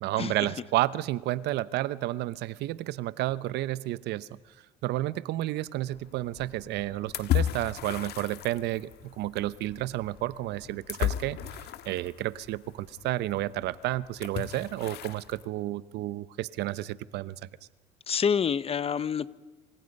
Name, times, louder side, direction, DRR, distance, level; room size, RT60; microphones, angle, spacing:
voice 1, 0.0-4.3 4.8-8.9 9.2-11.4 11.9-17.4, right 15 dB, 80° right, 17 dB, 0.8 m, -31 dB
sound 1, 5.9-15.4, left 11 dB, 75° left, 1.7 m, -35 dB
voice 2, 18.1-19.3, left 7 dB, 35° left, 17 dB, 0.9 m, -27 dB
28.0 x 26.0 x 5.4 m, 1.2 s
cardioid pair, 110°, 17 cm